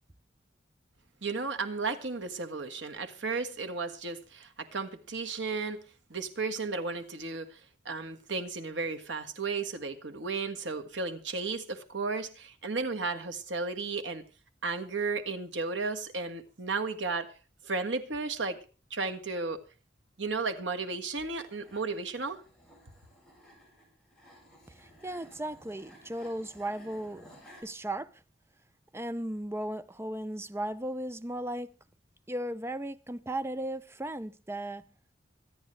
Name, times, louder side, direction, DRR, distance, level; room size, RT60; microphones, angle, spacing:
voice 1, 1.2-5.8 6.1-7.6 7.9-14.2 14.6-17.3 17.6-18.6 18.9-19.6 20.2-22.4, right 4 dB, 85° right, 1.7 m, -34 dB
sound 1, 21.2-27.6, equal, 5° left, 7.8 m, -56 dB
voice 2, 24.7-27.2 27.6-28.1 28.9-31.7 32.3-34.8, right 1 dB, 15° right, 0.6 m, -36 dB
25.5 x 9.4 x 3.3 m
head